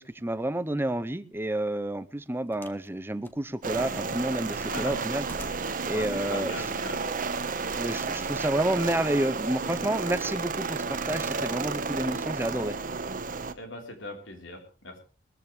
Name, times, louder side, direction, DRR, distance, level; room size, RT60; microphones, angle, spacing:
voice 1, 0.0-5.2 5.5-6.6 7.7-12.7, right 1 dB, 10° right, 14 dB, 0.7 m, -30 dB
sound 1, 1.3-1.5 2.5-2.9 3.2-4.0 4.4-5.8 6.7-6.8, left 1 dB, 10° left, 1.1 m, -47 dB
sound 2, 3.6-13.5, right 4 dB, 45° right, 1.1 m, -32 dB
voice 2, 4.5-5.1 5.9-7.2 7.6-7.9 13.6-15.0, left 2 dB, 90° left, 4 dB, 3.7 m, -39 dB
20.0 x 14.0 x 3.2 m, 0.35 s
head